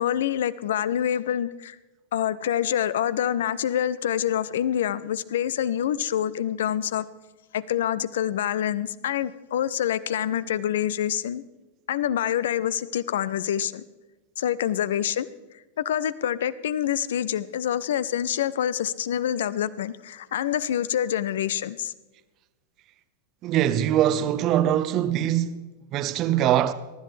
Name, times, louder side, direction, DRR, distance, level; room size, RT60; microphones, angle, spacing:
voice 1, 0.0-1.8 2.1-7.0 7.5-11.4 11.9-13.8 14.4-15.3 15.8-21.9, left 10 dB, 60° left, 0.6 m, -26 dB
voice 2, 23.4-26.7, right 11 dB, 35° right, 0.7 m, -23 dB
22.5 x 12.5 x 3.3 m
figure-of-eight pair, 90°, 0 cm